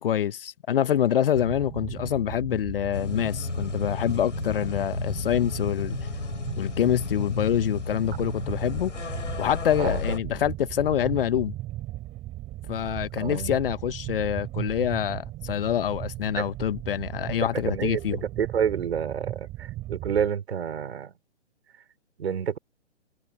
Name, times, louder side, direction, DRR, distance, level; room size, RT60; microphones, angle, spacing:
voice 1, 0.0-6.0 6.6-8.9 9.4-11.5 12.7-18.2, left 10 dB, 50° left, 1.2 m, -26 dB
sound 1, 1.3-20.3, right 16 dB, 20° right, 4.3 m, -37 dB
sound 2, 2.9-10.2, left 4 dB, 85° left, 7.7 m, -33 dB
voice 2, 9.8-10.2 13.2-13.6 16.4-16.5 17.6-21.1 22.2-22.6, right 8 dB, 60° right, 4.4 m, -29 dB
hypercardioid pair, 145°, 36 cm